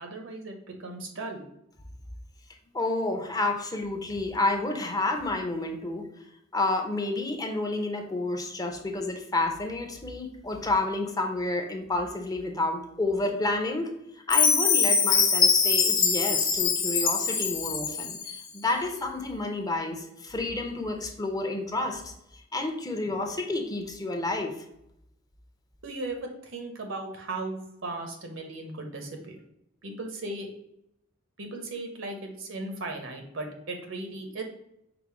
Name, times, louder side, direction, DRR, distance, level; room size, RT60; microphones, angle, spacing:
voice 1, 0.0-1.4 23.1-23.2 25.8-29.4 29.8-30.5 31.4-34.4, right 2 dB, 85° right, 3 dB, 0.9 m, -37 dB
voice 2, 2.7-6.1 6.5-13.9 14.3-24.5, left 2 dB, 20° left, 4 dB, 0.5 m, -30 dB
Chime, 14.3-18.4, left 6 dB, 85° left, 0.9 m, -23 dB
4.9 x 2.1 x 4.6 m, 0.78 s
head